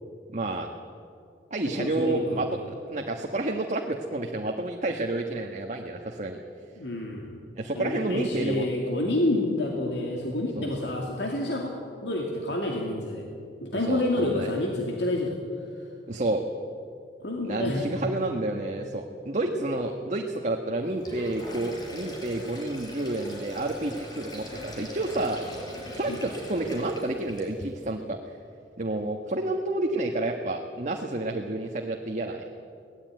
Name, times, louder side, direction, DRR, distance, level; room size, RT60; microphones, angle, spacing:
voice 1, 0.3-0.7 1.5-2.5 2.9-6.4 7.6-8.7 10.6-10.7 13.9-14.5 16.1-16.4 17.4-25.4 26.0-28.2 28.8-32.4, right 2 dB, 40° right, 2 dB, 1.3 m, -30 dB
voice 2, 1.8-2.5 6.8-7.4 7.7-11.7 12.0-13.3 13.6-15.4 17.2-17.9 26.1-26.2, left 1 dB, 70° left, 0 dB, 2.5 m, -28 dB
Sink (filling or washing), 20.9-27.7, left 1 dB, 25° left, 4.8 m, -40 dB
23.0 x 17.5 x 9.2 m, 2.5 s
head